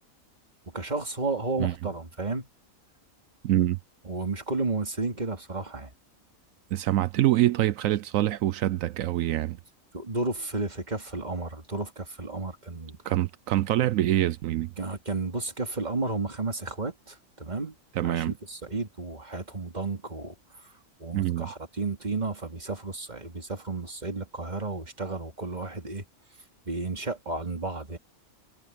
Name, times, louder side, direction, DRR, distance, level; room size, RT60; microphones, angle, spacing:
voice 1, 0.7-2.5 4.0-5.9 9.9-13.2 14.8-17.8 18.0-20.3 21.0-26.0 26.6-28.0, right 3 dB, 30° right, 2.6 m, -32 dB
voice 2, 3.4-3.8 6.7-9.6 13.1-14.7 18.0-18.3 21.1-21.5, right 14 dB, 80° right, 1.0 m, -25 dB
omnidirectional pair, 1.4 m